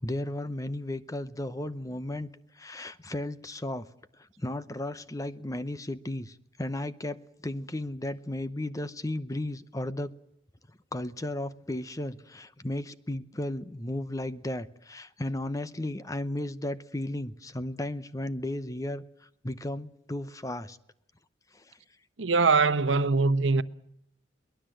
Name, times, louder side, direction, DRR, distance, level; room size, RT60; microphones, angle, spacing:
voice 1, 0.0-2.3 2.6-3.9 4.4-10.1 10.9-19.0 19.4-20.8 21.5-21.6, left 1 dB, 20° left, 0.8 m, -34 dB
voice 2, 22.2-23.6, right 4 dB, 85° right, 1.0 m, -22 dB
23.0 x 19.5 x 7.8 m
head